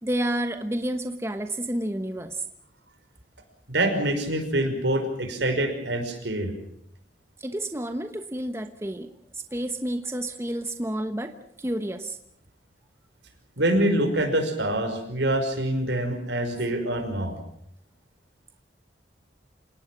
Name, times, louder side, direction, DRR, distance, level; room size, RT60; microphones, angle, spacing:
voice 1, 0.0-2.4 7.4-12.2, right 1 dB, 15° right, 8 dB, 1.1 m, -30 dB
voice 2, 3.7-6.5 13.6-17.4, right 1 dB, 75° right, 6 dB, 5.7 m, -25 dB
28.0 x 18.5 x 7.5 m, 0.71 s
head